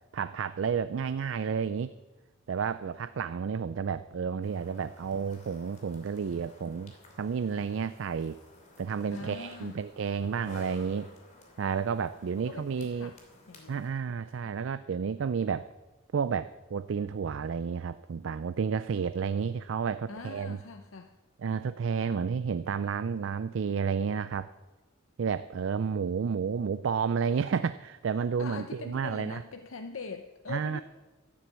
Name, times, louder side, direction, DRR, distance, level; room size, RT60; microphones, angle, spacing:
voice 1, 0.1-1.9 2.5-6.9 7.2-8.4 8.8-11.1 11.6-13.1 13.7-15.7 16.1-20.6 21.4-24.5 25.2-29.4 30.5-30.8, right 6 dB, 65° right, 14 dB, 0.4 m, -31 dB
sound 1, 4.4-13.9, left 1 dB, 35° left, 2.8 m, -54 dB
voice 2, 9.1-9.8 12.4-13.2 13.5-13.8 14.4-14.5 20.1-21.1 28.4-30.8, left 4 dB, 80° left, 6 dB, 0.7 m, -42 dB
12.5 x 9.9 x 7.4 m, 1.2 s
head